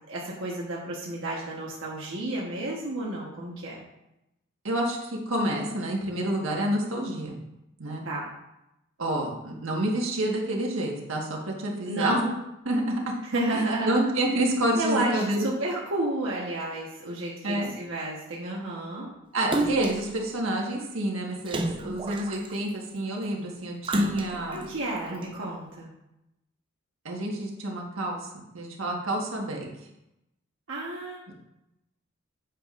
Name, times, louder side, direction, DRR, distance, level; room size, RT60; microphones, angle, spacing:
voice 1, 0.1-3.8 8.0-8.3 11.8-12.3 13.3-14.0 14.8-19.1 24.5-25.9 30.7-31.4, right 1 dB, 75° right, -4 dB, 1.3 m, -31 dB
voice 2, 4.6-7.4 7.8-8.0 9.0-12.2 12.6-13.1 13.5-15.4 17.4-17.7 19.3-24.7 25.1-25.2 27.0-28.3 28.5-29.7, right 1 dB, 90° right, -1 dB, 1.5 m, -28 dB
Splash splatter, 19.5-20.1 21.5-22.7 23.8-24.6 25.2-25.3, right 1 dB, 25° right, 0.5 m, -30 dB
8.5 x 7.5 x 2.6 m, 0.89 s
head